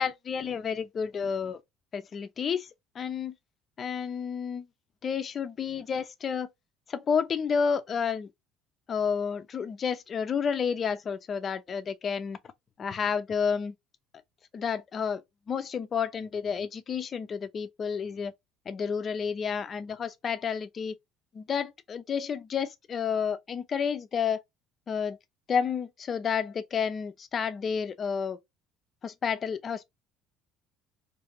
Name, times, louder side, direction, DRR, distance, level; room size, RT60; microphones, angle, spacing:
voice 1, 0.0-1.6 1.9-2.7 3.0-3.4 3.8-4.7 5.0-6.5 6.9-8.3 8.9-12.4 12.8-13.7 14.5-15.2 15.5-18.3 18.7-21.0 21.3-24.4 24.9-25.2 25.5-28.4 29.0-29.8, left 6 dB, 30° left, 0.4 m, -30 dB
2.5 x 2.4 x 2.9 m
cardioid pair, 145°, 0 cm